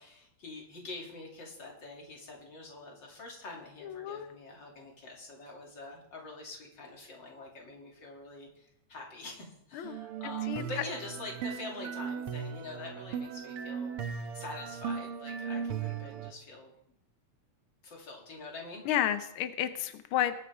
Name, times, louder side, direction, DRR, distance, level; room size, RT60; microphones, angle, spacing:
voice 1, 0.0-14.0 14.3-16.7 17.8-18.8, left 2 dB, 40° left, -1 dB, 3.3 m, -45 dB
voice 2, 3.8-4.3 9.7-10.6 18.9-20.3, left 11 dB, 85° left, 10 dB, 1.1 m, -32 dB
sound 1, 9.8-16.3, right 7 dB, 65° right, 1.5 m, -37 dB
20.5 x 9.7 x 3.6 m, 0.76 s
omnidirectional pair, 3.3 m